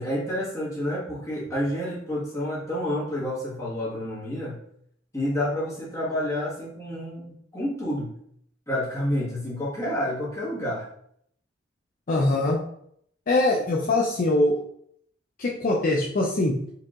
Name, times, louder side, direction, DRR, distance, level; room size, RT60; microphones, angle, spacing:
voice 1, 0.0-4.6 5.1-8.1 8.7-10.9, left 1 dB, 15° left, -8 dB, 1.5 m, -29 dB
voice 2, 12.1-12.6 13.3-14.6 15.4-16.6, left 2 dB, 45° left, -2 dB, 0.5 m, -22 dB
4.6 x 2.8 x 2.4 m, 0.68 s
head